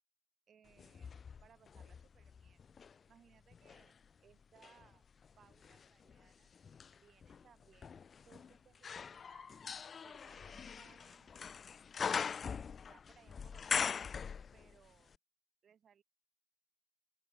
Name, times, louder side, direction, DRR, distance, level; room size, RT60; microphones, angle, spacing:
voice 1, 0.5-2.6 3.1-4.0 4.2-5.0 5.4-6.5 6.9-9.6 10.0-11.5 12.9-14.0 14.5-15.2 15.6-16.0, right 8 dB, 65° right, 6.9 m, -66 dB
sound 1, 0.8-3.0 3.5-14.9 15.1-15.2, left 6 dB, 50° left, 0.4 m, -42 dB
open air
cardioid pair, 115°, 0 cm